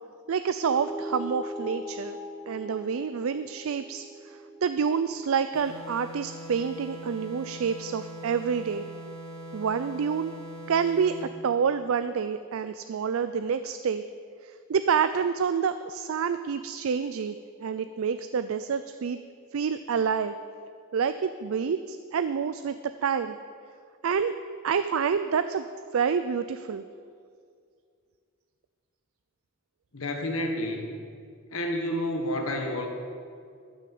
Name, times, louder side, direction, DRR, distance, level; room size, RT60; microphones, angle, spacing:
voice 1, 0.3-2.2 2.5-8.8 9.5-10.3 10.7-14.0 14.4-19.2 19.5-20.3 20.9-23.4 24.0-24.4 24.6-25.6 25.9-26.8, right 6 dB, 75° right, 11 dB, 0.4 m, -28 dB
sound 1, 0.5-5.3, equal, 10° left, 1.6 m, -40 dB
sound 2, 5.5-11.4, equal, 15° right, 2.9 m, -41 dB
voice 2, 29.9-30.9 31.5-32.9, left 1 dB, 75° left, 3 dB, 1.3 m, -29 dB
13.0 x 6.3 x 7.7 m, 2.2 s
head